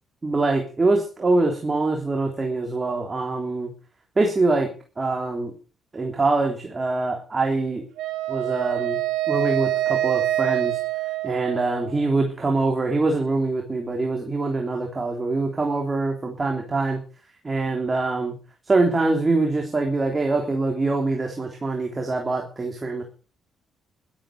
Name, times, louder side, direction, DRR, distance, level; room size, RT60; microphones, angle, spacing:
voice 1, 0.2-3.7 4.2-4.7 5.0-5.5 5.9-7.8 8.3-9.0 9.3-10.8 11.2-17.0 17.4-18.4 18.7-23.0, right 3 dB, 25° right, 2 dB, 3.4 m, -24 dB
Wind instrument woodwind instrument, 8.0-12.1, right 14 dB, 90° right, 3.5 m, -26 dB
12.5 x 12.5 x 6.6 m, 0.39 s
cardioid pair, 90°, 0 cm